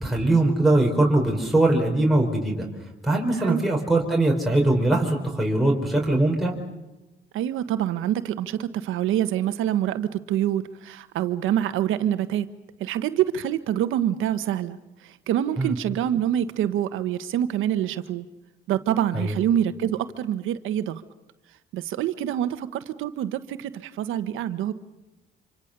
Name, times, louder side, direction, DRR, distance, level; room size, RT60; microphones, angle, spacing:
voice 1, 0.0-2.7 3.0-6.5 15.6-15.7 19.1-19.3, right 2 dB, ahead, -1 dB, 5.0 m, -21 dB
voice 2, 3.4-3.7 7.3-12.5 12.8-14.8 15.0-18.2 18.7-21.0 21.7-24.7, right 11 dB, 90° right, 11 dB, 1.3 m, -26 dB
27.0 x 26.5 x 6.8 m, 1.0 s
cardioid pair, 90°, 20 cm